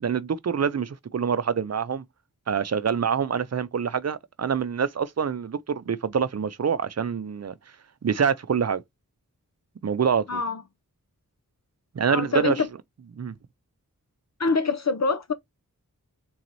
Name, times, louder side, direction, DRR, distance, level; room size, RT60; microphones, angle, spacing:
voice 1, 0.0-2.0 2.5-7.5 8.0-8.8 9.8-10.4 11.9-12.6 13.2-13.3, right 7 dB, 50° right, 0.6 m, -26 dB
voice 2, 10.3-10.6 12.1-12.7 14.4-15.3, left 4 dB, 50° left, 0.7 m, -25 dB
3.9 x 3.0 x 3.9 m
wide cardioid pair, 45°, 34 cm